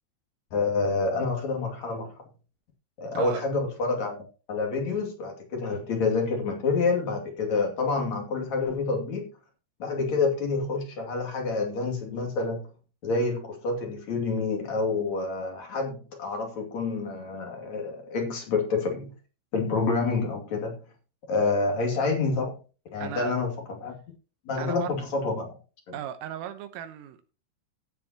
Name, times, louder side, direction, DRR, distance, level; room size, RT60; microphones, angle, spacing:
voice 1, 0.5-2.1 3.0-9.3 9.8-12.6 13.0-19.1 19.5-20.8 21.3-22.6 22.9-23.9 24.5-25.5 25.9-26.0, left 4 dB, 45° left, 2.9 m, -28 dB
voice 2, 3.2-3.5 23.0-23.3 24.6-25.0 25.9-27.3, right 11 dB, 85° right, 3.7 m, -36 dB
17.0 x 7.7 x 2.9 m
omnidirectional pair, 5.9 m